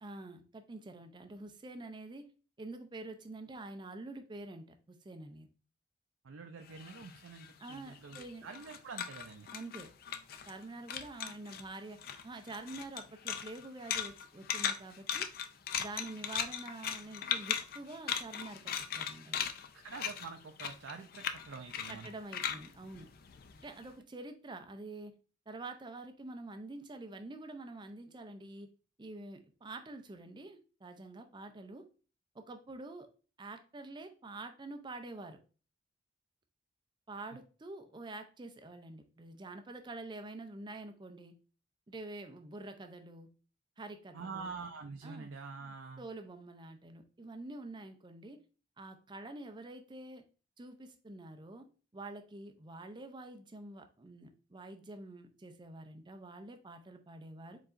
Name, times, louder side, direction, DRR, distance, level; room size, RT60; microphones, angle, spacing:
voice 1, 0.0-2.3 2.6-5.5 7.6-8.5 9.5-9.9 10.5-12.0 12.2-15.3 15.8-19.5 21.9-23.1 23.6-25.1 25.5-28.7 29.0-31.9 32.3-33.1 33.4-35.4 37.1-41.4 41.9-43.3 43.8-44.5 45.0-45.3 46.0-48.4 48.8-50.2 50.6-51.6 51.9-57.6, right 2 dB, 25° right, 7 dB, 0.4 m, -47 dB
voice 2, 6.2-9.5 19.7-22.1 37.3-37.4 44.1-46.0, right 4 dB, 80° right, 5 dB, 0.5 m, -46 dB
sound 1, 6.7-10.6 10.9-11.6 12.0-23.8, left 8 dB, 50° left, 0.4 m, -38 dB
4.7 x 4.0 x 2.5 m, 0.36 s
head